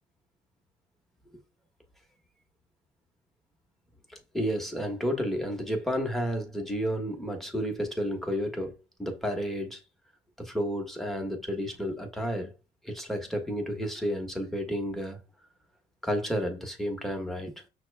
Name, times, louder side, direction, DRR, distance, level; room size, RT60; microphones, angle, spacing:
voice 1, 4.3-9.8 10.4-12.5 12.8-15.2 16.0-17.5, equal, ahead, 1.1 m, -31 dB
5.8 x 2.2 x 3.3 m
cardioid pair, 110°, 17 cm